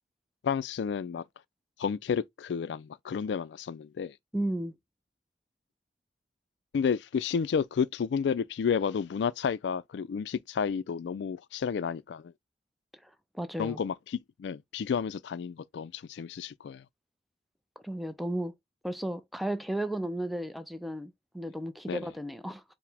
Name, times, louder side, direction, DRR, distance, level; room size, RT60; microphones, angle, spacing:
voice 1, 0.4-1.2 1.8-4.1 6.7-12.3 13.6-16.8 21.9-22.0, left 6 dB, 85° left, 0.3 m, -31 dB
voice 2, 4.3-4.8 13.0-13.8 17.8-18.5 18.8-22.6, right 1 dB, ahead, 0.4 m, -34 dB
4.7 x 2.1 x 3.3 m
head